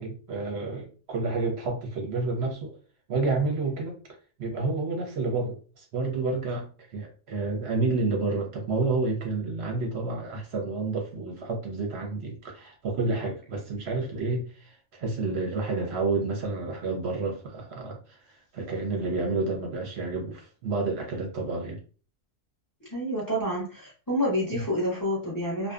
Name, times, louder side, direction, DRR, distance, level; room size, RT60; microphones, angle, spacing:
voice 1, 0.0-2.8 3.1-4.0 4.4-18.2 18.5-21.8 24.5-24.6, right 3 dB, 60° right, 0.7 m, -30 dB
voice 2, 22.9-25.7, equal, 20° left, 0.5 m, -28 dB
2.6 x 2.1 x 2.3 m
omnidirectional pair, 1.6 m